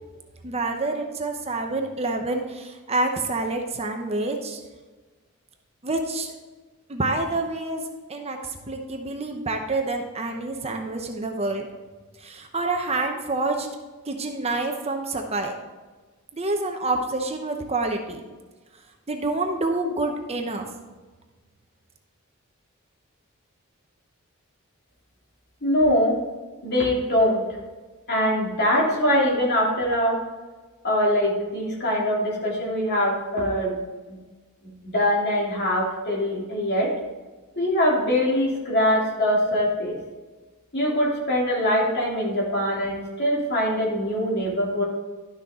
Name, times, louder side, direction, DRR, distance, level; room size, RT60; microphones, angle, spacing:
voice 1, 0.4-4.6 5.8-6.3 6.9-8.4 8.7-11.7 12.2-13.7 14.0-15.5 16.3-18.2 19.1-20.7, right 2 dB, 30° right, 3 dB, 0.9 m, -27 dB
voice 2, 25.6-26.2 26.6-27.5 28.1-30.2 30.8-33.8 34.1-34.2 34.8-36.9 37.6-40.0 40.7-44.8, equal, 50° left, -4 dB, 3.1 m, -23 dB
12.0 x 6.5 x 3.8 m, 1.3 s
head